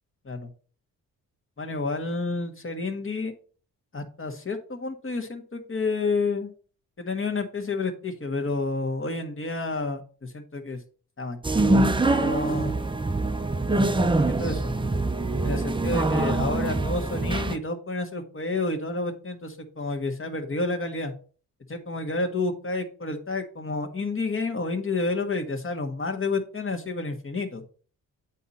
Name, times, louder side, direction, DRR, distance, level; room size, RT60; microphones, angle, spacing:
voice 1, 1.6-3.3 3.9-6.5 7.0-10.8 11.2-12.8 13.7-14.7 15.4-21.1 21.7-27.6, left 3 dB, 35° left, 4 dB, 1.5 m, -30 dB
sound 1, 11.4-17.6, right 2 dB, 15° right, 0.6 m, -24 dB
8.2 x 4.3 x 4.2 m, 0.41 s
cardioid pair, 60°, 38 cm